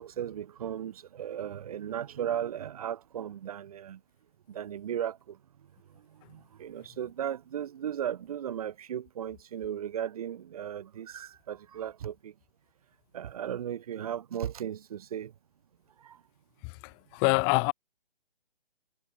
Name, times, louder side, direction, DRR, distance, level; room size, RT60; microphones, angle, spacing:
voice 1, 0.0-4.0 4.5-5.4 6.1-12.3 13.1-15.3 16.0-16.2, right 10 dB, 35° right, 1.3 m, -36 dB
voice 2, 16.6-17.7, left 39 dB, 15° left, 1.9 m, -26 dB
hypercardioid pair, 155°, 31 cm